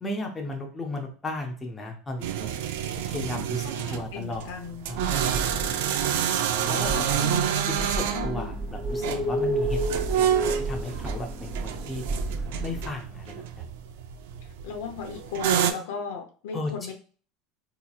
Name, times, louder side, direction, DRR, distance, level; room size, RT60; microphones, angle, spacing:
voice 1, 0.0-2.6 3.0-4.5 4.9-5.2 6.7-7.2 7.7-12.0 12.6-13.3 16.5-16.9, left 2 dB, 15° left, 1 dB, 0.6 m, -35 dB
sound 1, 2.2-15.7, right 9 dB, 85° right, 0.4 m, -29 dB
voice 2, 3.1-4.8 6.9-7.4 8.1-8.5 14.6-16.9, left 5 dB, 80° left, 4 dB, 0.7 m, -37 dB
sound 2, 4.9-12.9, right 1 dB, 20° right, 0.8 m, -31 dB
4.2 x 2.9 x 2.3 m, 0.41 s
cardioid pair, 165°, 0 cm